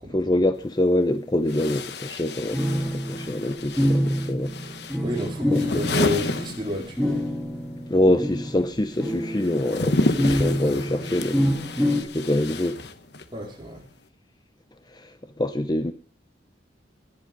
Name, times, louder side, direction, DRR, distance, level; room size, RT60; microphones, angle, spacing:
voice 1, 0.1-4.5 5.5-5.6 7.9-11.4 12.1-12.8 14.9-15.1 15.4-15.9, left 1 dB, 25° left, 0.7 m, -25 dB
sound 1, 0.5-0.6 1.5-7.3 7.5-13.4, left 2 dB, 65° left, 1.1 m, -31 dB
sound 2, 2.5-8.6 9.0-12.0, equal, 5° left, 2.2 m, -26 dB
voice 2, 5.0-7.2 13.3-13.8, left 1 dB, 25° right, 4.4 m, -30 dB
21.0 x 8.1 x 5.3 m
head